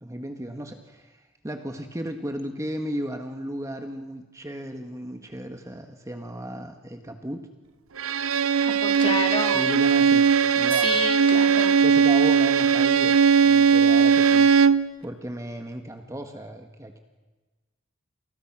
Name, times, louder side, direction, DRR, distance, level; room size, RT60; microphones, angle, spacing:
voice 1, 0.0-7.5 9.5-10.3 10.5-11.1 11.8-13.2 13.4-14.5 15.0-17.0, right 1 dB, 15° right, 5 dB, 1.6 m, -35 dB
Bowed string instrument, 8.0-14.9, right 6 dB, 90° right, 0.9 m, -19 dB
voice 2, 8.6-9.7 10.7-11.7, left 3 dB, 25° left, 3 dB, 3.4 m, -30 dB
29.0 x 28.5 x 6.1 m, 1.2 s
head